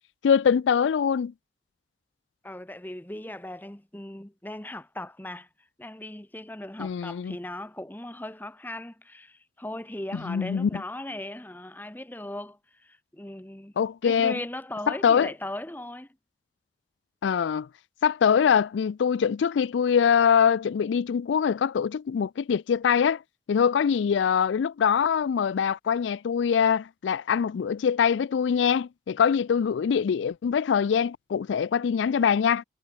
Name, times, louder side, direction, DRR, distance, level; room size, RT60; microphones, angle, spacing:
voice 1, 0.2-1.3 6.8-7.4 10.1-10.8 13.8-14.4 14.9-15.3 17.2-17.7 18.0-23.2 23.5-32.6, left 7 dB, 85° left, 0.4 m, -23 dB
voice 2, 2.4-5.5 5.8-13.7 14.0-16.1, left 1 dB, 10° left, 1.0 m, -38 dB
head